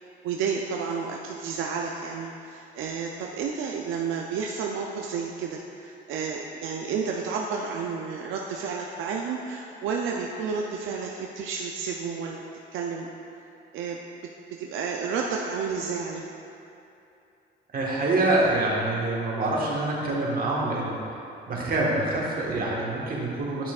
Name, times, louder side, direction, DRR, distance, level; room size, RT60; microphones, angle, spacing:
voice 1, 0.2-12.4 12.7-13.1 13.7-14.0 14.5-16.3, right 5 dB, 85° right, 0 dB, 0.5 m, -31 dB
voice 2, 17.7-21.0 21.5-23.7, right 2 dB, 50° right, -4 dB, 1.4 m, -26 dB
8.8 x 5.9 x 2.4 m, 2.8 s
cardioid pair, 90°, 20 cm